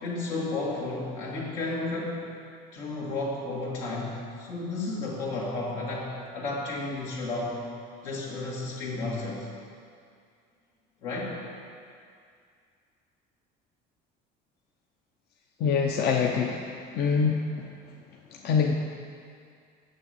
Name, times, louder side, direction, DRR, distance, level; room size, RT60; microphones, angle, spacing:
voice 1, 0.0-2.3 2.7-7.6 8.0-9.5 11.0-11.4, left 2 dB, 90° left, -5 dB, 2.5 m, -32 dB
voice 2, 15.6-16.6 16.9-17.7 18.4-18.7, left 6 dB, 55° left, 1 dB, 0.8 m, -24 dB
7.3 x 6.6 x 7.9 m, 2.3 s
cardioid pair, 110°, 20 cm